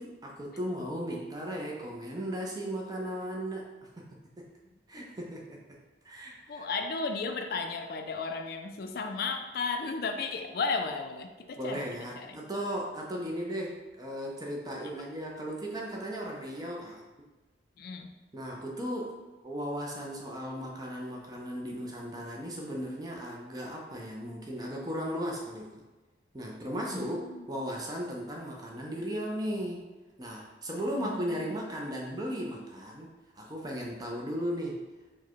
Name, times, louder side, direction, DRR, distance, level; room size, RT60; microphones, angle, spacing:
voice 1, 0.0-4.1 4.4-4.5 4.9-5.6 6.0-6.7 11.6-17.0 18.3-19.1 19.4-25.8 26.3-29.8 30.2-33.1 33.4-34.8, equal, 20° right, -1 dB, 0.5 m, -36 dB
voice 2, 6.5-11.9 12.2-12.4 17.8-18.1 26.9-27.5 31.0-31.5, left 4 dB, 55° left, 6 dB, 0.4 m, -34 dB
4.6 x 2.2 x 4.5 m, 1.2 s
head